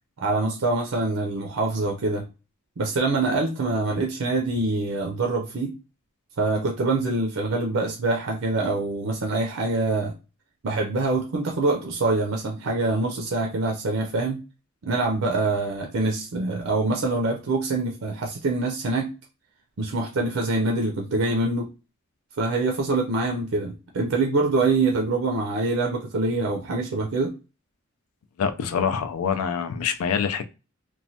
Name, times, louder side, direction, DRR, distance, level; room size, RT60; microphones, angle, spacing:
voice 1, 0.2-2.2 2.8-5.8 6.4-10.1 10.6-14.4 14.8-19.1 19.8-21.7 22.4-27.3, right 3 dB, 65° right, 1 dB, 0.5 m, -25 dB
voice 2, 28.4-30.4, left 7 dB, 75° left, 10 dB, 0.4 m, -25 dB
3.0 x 2.2 x 2.7 m, 0.30 s
head